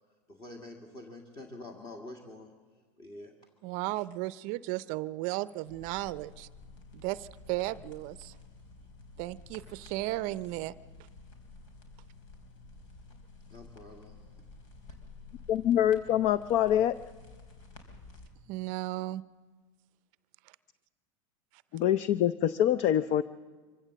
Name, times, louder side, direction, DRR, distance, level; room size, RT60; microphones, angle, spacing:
voice 1, 0.3-2.5 3.0-3.3 13.5-14.2, left 2 dB, 25° left, 2 dB, 2.1 m, -46 dB
voice 2, 3.6-6.5 6.9-8.3 9.2-10.7 18.5-19.2, right 17 dB, 50° right, 17 dB, 0.5 m, -35 dB
sound 1, 5.7-18.3, left 3 dB, 80° left, 4.1 m, -52 dB
voice 3, 15.5-16.9 21.7-23.2, left 11 dB, 45° left, 16 dB, 0.5 m, -25 dB
24.5 x 16.0 x 7.5 m, 1.4 s
supercardioid pair, 125°, 17 cm